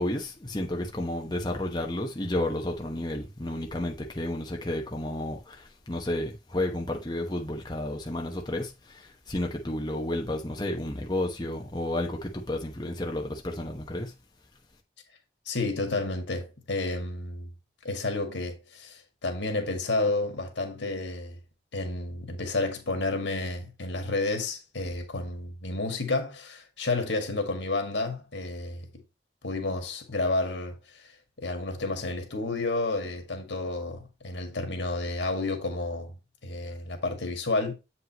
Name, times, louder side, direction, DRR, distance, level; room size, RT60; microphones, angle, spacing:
voice 1, 0.0-14.1, left 1 dB, 25° left, 1.0 m, -31 dB
voice 2, 15.5-17.5 17.8-21.4 21.7-28.9 29.4-30.8 31.4-36.1 36.4-37.8, left 2 dB, 90° left, 2.0 m, -30 dB
7.7 x 5.4 x 3.0 m
head